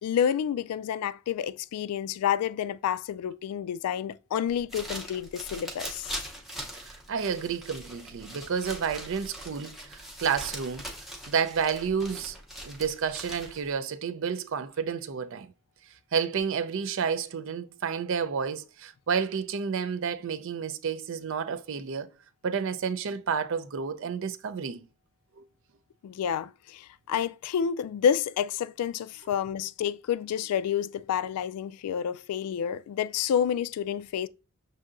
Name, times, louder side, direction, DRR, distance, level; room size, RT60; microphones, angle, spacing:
voice 1, 0.0-6.1 26.0-34.3, left 8 dB, 90° left, 0.3 m, -29 dB
sound 1, 4.5-13.7, equal, ahead, 0.6 m, -41 dB
voice 2, 6.8-10.8 11.3-12.4 12.6-15.5 16.1-22.1 22.4-24.8, right 6 dB, 60° right, 0.4 m, -30 dB
6.4 x 2.7 x 2.4 m
head